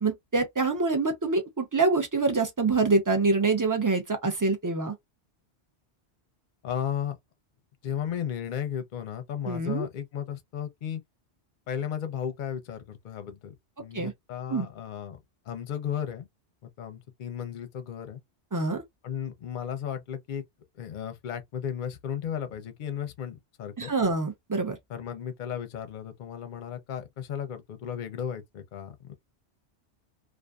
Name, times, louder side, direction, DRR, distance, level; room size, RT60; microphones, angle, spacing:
voice 1, 0.0-4.9 9.5-9.9 13.9-14.1 14.5-14.7 18.5-18.8 23.8-24.8, right 3 dB, 25° right, 0.4 m, -25 dB
voice 2, 6.6-7.2 7.8-11.0 11.7-15.2 15.5-16.3 16.6-18.2 19.0-20.4 20.8-23.9 24.9-29.1, left 8 dB, 55° left, 0.6 m, -35 dB
2.5 x 2.4 x 2.2 m
omnidirectional pair, 1.1 m